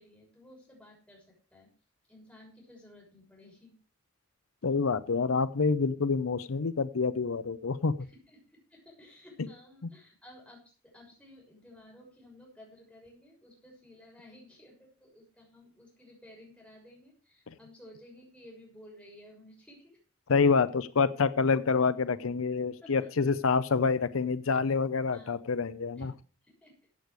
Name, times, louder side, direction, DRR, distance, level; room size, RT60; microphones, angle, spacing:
voice 1, 0.0-1.7 2.1-3.8 8.0-20.0 22.8-23.3 25.1-25.3 26.0-26.1 26.4-26.9, left 1 dB, 5° left, -2 dB, 6.4 m, -54 dB
voice 2, 4.6-7.9 9.4-9.5 20.3-26.1, left 4 dB, 85° left, 15 dB, 0.6 m, -27 dB
14.5 x 8.3 x 4.8 m, 0.36 s
head